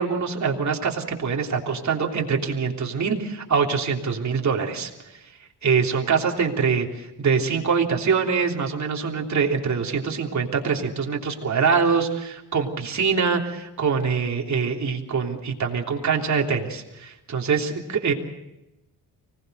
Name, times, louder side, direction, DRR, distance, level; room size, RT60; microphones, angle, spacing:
voice 1, 0.0-4.9 5.6-18.1, right 5 dB, 40° right, 1 dB, 3.3 m, -24 dB
25.0 x 19.5 x 6.7 m, 0.91 s
cardioid pair, 110°, 42 cm